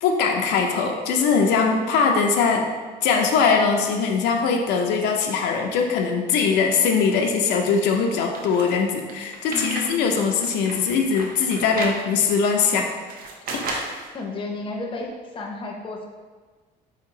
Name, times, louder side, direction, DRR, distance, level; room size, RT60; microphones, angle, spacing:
voice 1, 0.0-2.7 3.0-12.9 13.5-13.9, left 5 dB, 85° left, 2 dB, 0.4 m, -21 dB
sound 1, 8.3-9.9 10.3-12.0 12.6-14.1, right 3 dB, 60° right, 0.5 m, -33 dB
voice 2, 9.5-10.0 14.1-15.1 15.3-16.1, left 3 dB, 30° left, 0 dB, 0.5 m, -32 dB
3.7 x 2.8 x 2.6 m, 1.4 s
cardioid pair, 110°, 17 cm